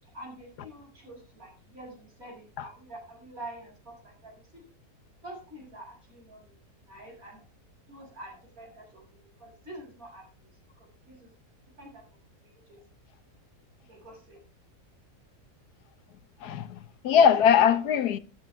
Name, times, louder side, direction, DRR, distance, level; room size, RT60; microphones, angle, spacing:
voice 1, 0.0-4.6 5.2-6.6 6.9-7.5 7.9-10.5 10.8-11.3 11.8-12.0 12.4-12.8 13.9-14.4, right 1 dB, 60° right, 7.8 m, -47 dB
voice 2, 16.4-18.2, left 8 dB, 75° left, 1.4 m, -21 dB
13.5 x 11.5 x 3.7 m
omnidirectional pair, 1.7 m